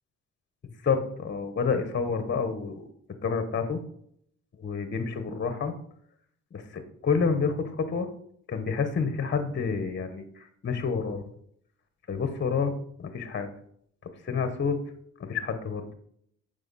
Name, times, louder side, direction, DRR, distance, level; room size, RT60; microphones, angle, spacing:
voice 1, 0.8-2.8 3.2-3.8 4.6-5.7 6.5-8.1 8.5-11.2 12.1-12.7 13.0-13.5 14.2-14.8 15.2-15.8, left 5 dB, 40° left, 9 dB, 1.2 m, -28 dB
9.0 x 5.5 x 4.1 m, 0.67 s
cardioid pair, 90°, 30 cm